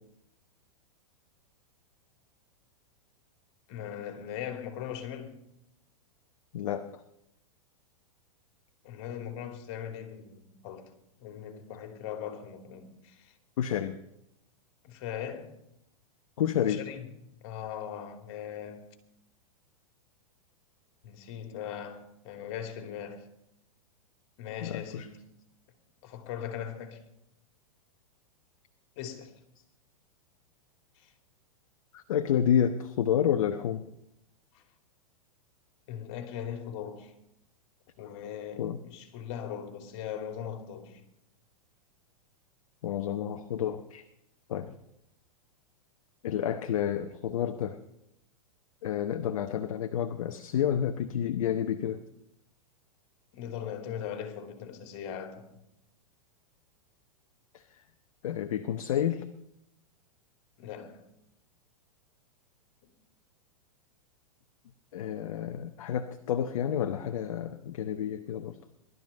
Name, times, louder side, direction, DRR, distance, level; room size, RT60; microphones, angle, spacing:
voice 1, 3.7-5.4 8.8-10.9 11.2-13.3 14.8-15.5 16.6-18.8 21.0-23.3 24.4-25.1 26.0-27.0 29.0-29.3 31.0-31.1 34.5-34.6 35.9-37.1 38.0-41.0 53.3-55.6 60.6-61.0, left 9 dB, 50° left, 2.7 m, -39 dB
voice 2, 6.5-6.9 13.6-14.0 16.4-16.8 24.6-25.1 31.9-33.9 38.6-38.8 42.8-44.0 44.5-44.8 46.2-47.8 48.8-52.0 57.5-57.6 58.2-59.2 64.9-68.6, left 9 dB, 65° left, 1.0 m, -29 dB
20.0 x 12.5 x 5.5 m
hypercardioid pair, 105°, 18 cm